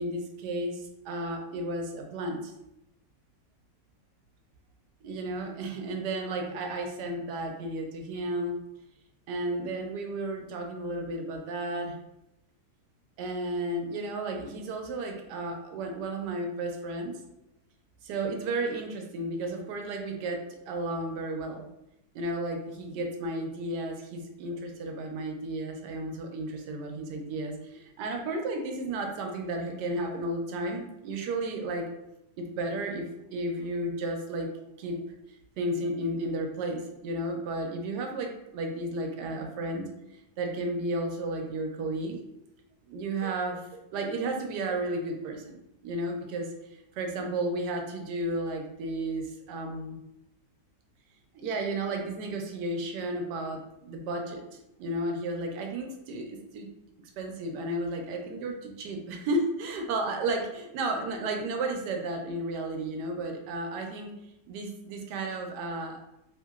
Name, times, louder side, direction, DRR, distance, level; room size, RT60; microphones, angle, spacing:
voice 1, 0.0-2.5 5.0-8.6 9.3-12.0 13.2-17.2 18.0-21.6 22.1-31.9 32.4-34.5 34.8-35.0 35.3-39.9 40.4-42.2 42.9-45.6 45.8-46.5 46.9-50.0 51.3-56.7 57.2-64.1 64.5-66.0, right 2 dB, 90° right, 3 dB, 1.2 m, -33 dB
3.0 x 2.8 x 2.3 m, 0.85 s
omnidirectional pair, 1.7 m